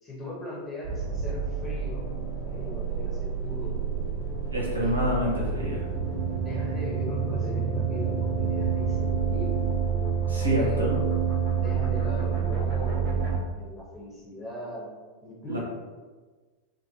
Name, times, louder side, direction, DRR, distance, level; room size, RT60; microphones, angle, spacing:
voice 1, 0.0-2.1 2.5-4.1 4.8-5.8 6.4-9.5 10.5-11.0 11.6-14.9 15.2-15.6, left 1 dB, 25° left, -5 dB, 1.0 m, -40 dB
sound 1, 0.8-13.4, right 6 dB, 40° right, 0.7 m, -28 dB
voice 2, 4.5-5.8 10.3-10.9 15.5-15.6, equal, 85° right, -5 dB, 0.7 m, -27 dB
2.5 x 2.2 x 2.9 m, 1.3 s
figure-of-eight pair, 90°, 0 cm